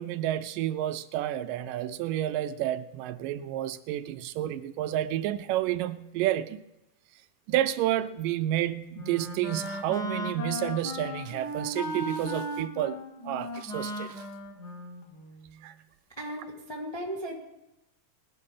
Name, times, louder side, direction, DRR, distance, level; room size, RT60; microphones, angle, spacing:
voice 1, 0.0-6.6 7.5-14.3 15.6-15.7, right 13 dB, 80° right, 2.2 m, -30 dB
Wind instrument woodwind instrument, 8.5-15.6, left 1 dB, 50° left, 1.2 m, -37 dB
voice 2, 16.2-17.4, right 1 dB, 15° left, 1.0 m, -36 dB
20.0 x 11.0 x 3.7 m
omnidirectional pair, 3.9 m